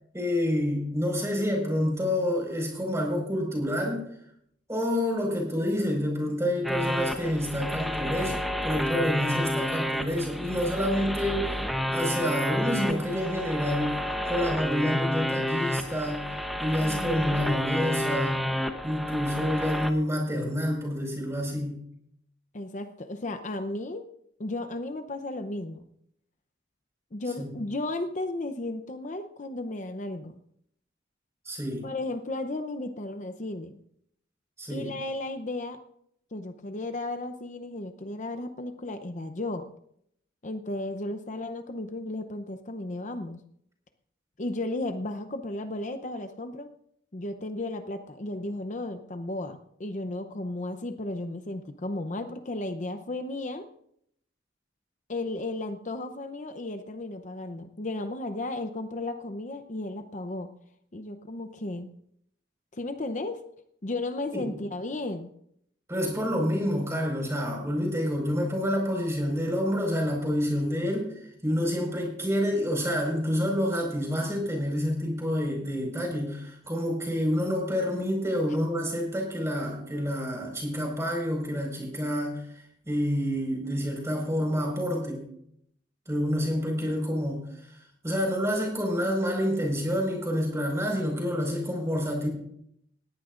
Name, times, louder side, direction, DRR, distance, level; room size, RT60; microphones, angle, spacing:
voice 1, 0.1-4.1 4.7-11.6 11.9-16.3 16.6-18.5 18.8-21.9 27.4-27.5 31.5-31.9 34.6-34.9 64.4-64.5 65.9-71.1 71.4-82.4 82.9-85.3 86.1-87.5 88.0-92.3, equal, 15° right, 0 dB, 5.1 m, -28 dB
sound 1, 6.6-19.9, equal, ahead, 0.9 m, -30 dB
voice 2, 16.8-17.6 22.5-24.1 24.4-25.8 27.1-30.3 31.8-33.8 34.7-35.8 36.3-39.7 40.4-43.4 44.4-46.7 47.1-53.7 55.1-60.5 60.9-61.9 62.7-63.4 63.8-65.3, left 2 dB, 45° left, 8 dB, 0.8 m, -34 dB
20.0 x 15.0 x 2.6 m, 0.71 s
head